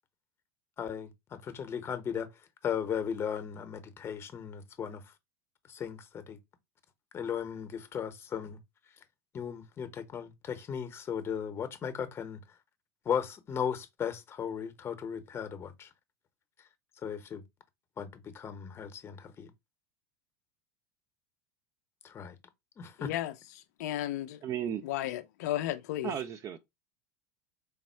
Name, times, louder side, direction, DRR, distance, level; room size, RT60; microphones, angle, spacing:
voice 1, 0.8-2.3 2.6-5.0 5.7-6.4 7.1-8.6 9.3-12.4 13.0-15.9 17.0-17.4 18.0-19.5 22.0-22.4 22.8-23.1, left 8 dB, 30° left, 0.7 m, -36 dB
voice 2, 23.0-24.4 24.8-26.1, left 13 dB, 75° left, 0.4 m, -34 dB
voice 3, 24.4-24.8 26.0-26.6, right 9 dB, 40° right, 0.4 m, -34 dB
3.5 x 2.0 x 4.3 m
supercardioid pair, 105°, 9 cm